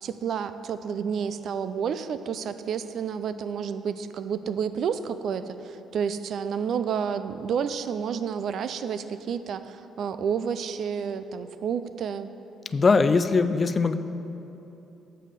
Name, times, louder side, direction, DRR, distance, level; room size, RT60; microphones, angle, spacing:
voice 1, 0.0-12.3, right 7 dB, 60° right, 12 dB, 0.4 m, -30 dB
voice 2, 12.7-13.9, left 4 dB, 30° left, 10 dB, 0.3 m, -21 dB
7.5 x 6.4 x 5.1 m, 2.9 s
cardioid pair, 115°, 0 cm